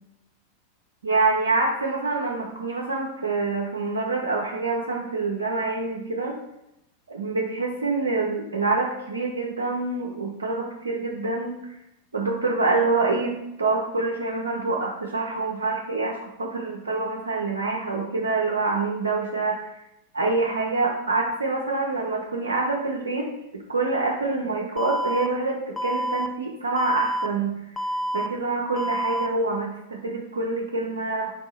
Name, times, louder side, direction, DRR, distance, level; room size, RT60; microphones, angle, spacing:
voice 1, 1.0-6.4 7.1-11.5 12.1-19.8 20.1-27.9 28.1-31.3, right 3 dB, 75° right, -1 dB, 0.5 m, -26 dB
Alarm, 24.8-25.3 25.8-26.3 26.8-27.3 27.8-28.3 28.8-29.3, equal, 5° left, 0.4 m, -27 dB
4.2 x 2.6 x 4.1 m, 0.85 s
figure-of-eight pair, 90°, 0 cm